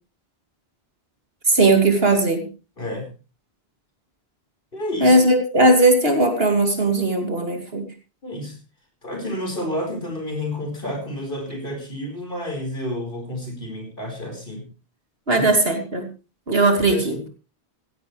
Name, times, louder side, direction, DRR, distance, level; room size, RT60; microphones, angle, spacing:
voice 1, 1.5-2.5 5.0-7.9 15.3-16.0 16.5-17.2, right 2 dB, 65° right, 4 dB, 3.0 m, -18 dB
voice 2, 2.8-3.1 4.7-5.3 8.2-8.5 9.0-14.6 15.3-15.5 16.9-17.2, left 1 dB, 55° left, 4 dB, 4.9 m, -30 dB
16.5 x 15.5 x 3.2 m, 0.33 s
omnidirectional pair, 1.1 m